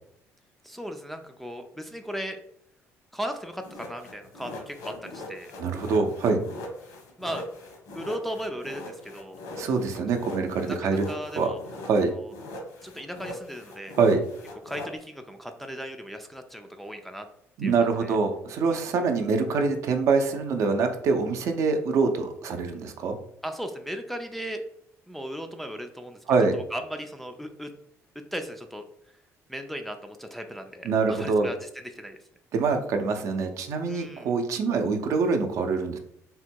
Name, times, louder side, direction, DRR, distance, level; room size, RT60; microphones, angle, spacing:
voice 1, 0.6-2.4 3.1-5.5 7.2-7.4 8.0-9.4 10.6-11.6 12.1-12.3 12.8-14.0 14.6-17.3 17.6-17.7 18.0-18.2 18.7-18.9 23.4-24.6 25.1-27.7 28.3-28.8 29.5-32.2 33.9-34.3, equal, ahead, 5 dB, 0.3 m, -37 dB
sound 1, 3.6-12.0 12.3-14.9, left 2 dB, 85° left, 1.1 m, -41 dB
voice 2, 5.6-6.4 9.6-11.0 11.4-11.5 11.9-12.1 14.0-14.2 17.6-23.2 26.3-26.6 30.8-31.5 32.5-36.0, right 4 dB, 60° right, 6 dB, 0.6 m, -24 dB
3.5 x 2.2 x 4.4 m, 0.72 s
cardioid pair, 135°, 6 cm